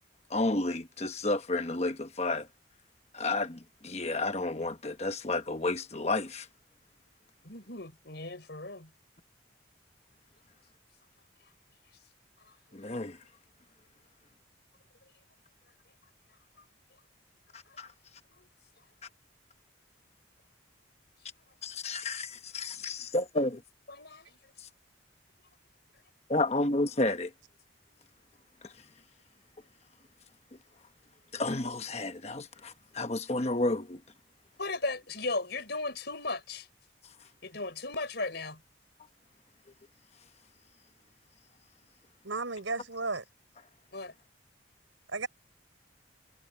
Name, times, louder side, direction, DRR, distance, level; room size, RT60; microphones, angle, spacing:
voice 1, 0.3-2.5 3.1-6.5 12.7-13.2 17.5-17.9 21.6-23.6 24.6-24.7 26.3-27.3 28.6-28.7 31.3-34.0, left 2 dB, 35° left, 1.1 m, -31 dB
voice 2, 7.4-8.9 12.7-12.8 17.7-17.8 18.4-18.5 23.9-24.4 34.6-36.7 37.4-38.6 43.9-44.1, left 3 dB, 60° left, 5.7 m, -36 dB
voice 3, 42.2-43.2 45.1-45.3, right 3 dB, 85° right, 6.0 m, -33 dB
head